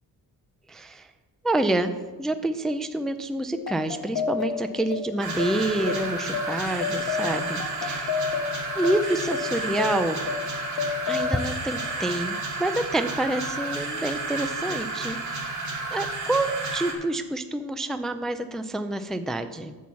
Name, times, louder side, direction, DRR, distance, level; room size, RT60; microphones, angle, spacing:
voice 1, 0.7-1.1 1.4-1.9 2.2-8.1 8.8-10.2 11.1-15.6 15.9-19.8, right 1 dB, ahead, 9 dB, 0.3 m, -28 dB
sound 1, 3.5-12.5, left 6 dB, 80° left, 0.9 m, -32 dB
sound 2, 5.2-16.9, right 3 dB, 55° right, 2.2 m, -32 dB
11.0 x 4.7 x 7.1 m, 1.2 s
wide cardioid pair, 150°, 37 cm